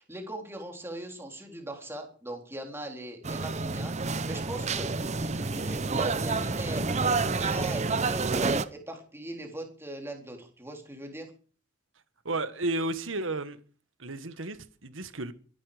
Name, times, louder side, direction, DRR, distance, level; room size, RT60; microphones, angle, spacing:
voice 1, 0.0-11.3, right 1 dB, 15° right, 3.8 m, -39 dB
sound 1, 3.2-8.6, right 4 dB, 35° right, 0.8 m, -29 dB
voice 2, 12.2-13.6 14.0-15.3, right 2 dB, 85° right, 1.6 m, -33 dB
23.0 x 11.5 x 5.1 m
head